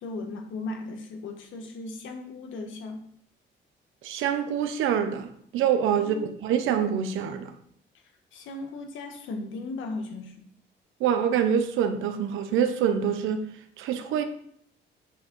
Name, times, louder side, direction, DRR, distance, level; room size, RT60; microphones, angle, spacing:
voice 1, 0.0-3.0 6.1-6.3 8.3-10.4, left 2 dB, 80° left, 1.4 m, -36 dB
voice 2, 4.0-7.5 11.0-13.4 13.8-14.2, right 8 dB, 90° right, 0.9 m, -25 dB
8.4 x 3.6 x 6.1 m
cardioid pair, 90°, 20 cm